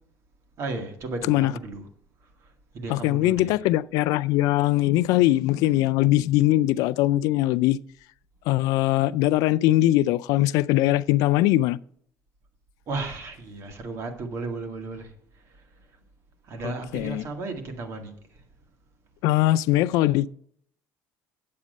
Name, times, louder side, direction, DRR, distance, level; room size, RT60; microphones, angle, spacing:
voice 1, 0.6-1.9 2.4-3.5 12.9-15.6 16.4-18.4, right 3 dB, 50° right, 1.9 m, -35 dB
voice 2, 2.9-7.8 8.5-11.8 16.9-17.2 19.2-20.3, left 16 dB, 85° left, 0.3 m, -21 dB
8.6 x 8.1 x 5.3 m
cardioid pair, 150°, 6 cm